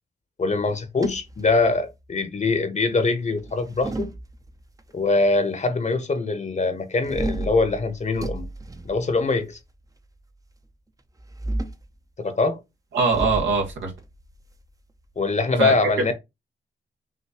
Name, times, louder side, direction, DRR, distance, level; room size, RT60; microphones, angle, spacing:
voice 1, 0.4-4.1 4.9-8.5 8.8-9.6 12.2-12.6 15.2-16.1, left 3 dB, 40° left, 0.9 m, -23 dB
sound 1, 0.7-2.1 3.4-4.8 7.0-9.6 11.2-11.9 13.1-15.5, right 2 dB, 20° right, 0.6 m, -33 dB
voice 2, 12.9-13.9 15.6-15.7, right 4 dB, 90° right, 1.5 m, -22 dB
5.8 x 2.6 x 2.9 m
cardioid pair, 65°, 19 cm